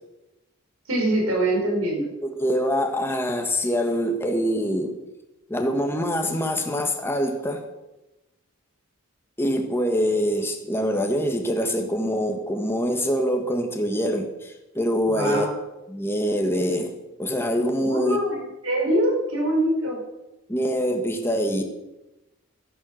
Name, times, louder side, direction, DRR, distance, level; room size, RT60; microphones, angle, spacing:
voice 1, 0.9-2.1 15.1-15.5 17.8-20.0, right 1 dB, 85° right, 0 dB, 5.0 m, -24 dB
voice 2, 2.2-5.0 5.5-7.6 9.4-15.4 15.9-18.2 20.5-21.6, equal, 10° left, 4 dB, 1.5 m, -24 dB
12.0 x 10.5 x 6.4 m, 0.99 s
head